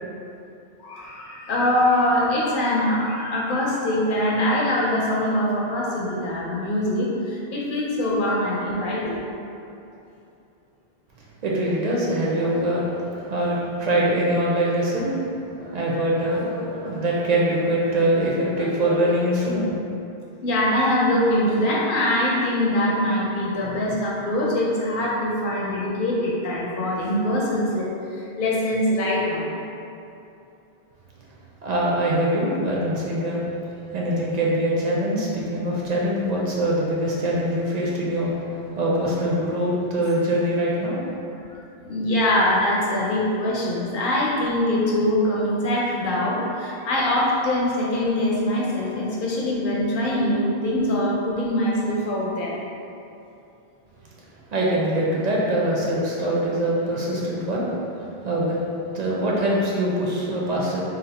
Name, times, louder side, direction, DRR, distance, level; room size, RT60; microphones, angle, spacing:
voice 1, 0.8-9.2 20.4-29.5 41.8-52.6, left 1 dB, 60° left, -4 dB, 0.8 m, -23 dB
voice 2, 11.4-15.2 15.6-19.7 31.6-33.4 33.9-38.4 38.8-41.0 54.5-57.7 58.2-58.6 58.9-60.8, right 1 dB, 55° right, -5 dB, 0.5 m, -23 dB
2.7 x 2.0 x 3.9 m, 2.7 s
omnidirectional pair, 1.0 m